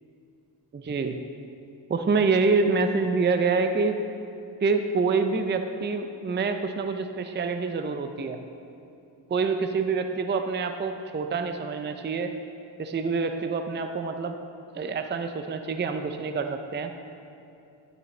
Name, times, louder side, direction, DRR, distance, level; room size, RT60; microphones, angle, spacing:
voice 1, 0.7-1.2 1.9-4.0 4.6-8.4 9.3-12.3 12.8-14.4 14.8-16.9, right 4 dB, 25° right, 7 dB, 0.4 m, -26 dB
10.5 x 9.3 x 3.2 m, 2.7 s
wide cardioid pair, 85°, 47 cm